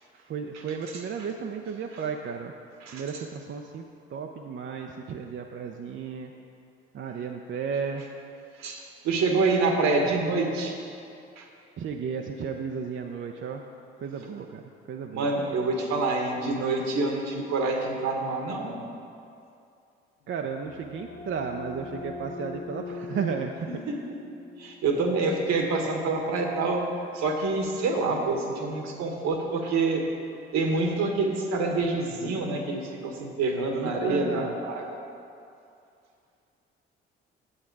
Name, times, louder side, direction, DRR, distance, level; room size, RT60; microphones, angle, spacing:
voice 1, 0.1-2.5 2.9-3.8 4.1-6.3 6.9-8.1 11.8-13.6 14.0-15.3 20.3-24.0 33.8-34.6, right 6 dB, 45° right, 3 dB, 0.6 m, -34 dB
voice 2, 8.6-10.8 11.4-11.5 15.1-18.8 24.6-26.8 27.1-30.0 30.5-34.9, right 3 dB, 65° right, 2 dB, 1.3 m, -27 dB
sound 1, 20.3-25.9, left 3 dB, 80° left, 1.2 m, -41 dB
8.8 x 7.3 x 4.6 m, 2.5 s
hypercardioid pair, 50°, 29 cm